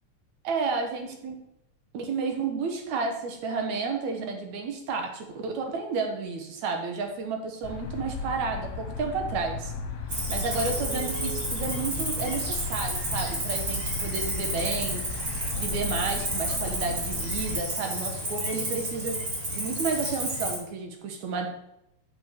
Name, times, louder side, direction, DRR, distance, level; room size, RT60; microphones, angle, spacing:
voice 1, 0.4-1.4 1.9-9.7 10.3-15.1 15.6-19.2 19.5-21.5, right 4 dB, 65° right, 3 dB, 2.6 m, -31 dB
sound 1, 7.6-17.6, left 4 dB, 65° left, 2.2 m, -36 dB
Cricket, 10.1-20.6, right 1 dB, 35° right, 3.1 m, -31 dB
7.6 x 5.3 x 6.2 m, 0.81 s
omnidirectional pair, 3.6 m